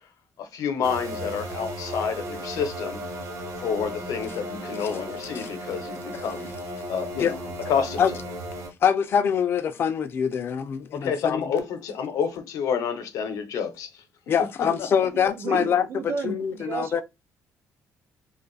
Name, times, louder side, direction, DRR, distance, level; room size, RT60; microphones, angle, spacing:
voice 1, 0.4-3.0 3.6-6.5 6.9-7.4 7.7-8.0 10.9-14.0, left 6 dB, 75° left, 0.7 m, -29 dB
sound 1, 0.8-8.7, equal, 60° right, 0.9 m, -35 dB
voice 2, 8.8-11.4 14.3-15.9 16.2-17.0, left 7 dB, 40° left, 0.4 m, -24 dB
voice 3, 15.1-17.0, right 5 dB, 40° right, 0.4 m, -33 dB
2.5 x 2.3 x 4.0 m
cardioid pair, 175°, 6 cm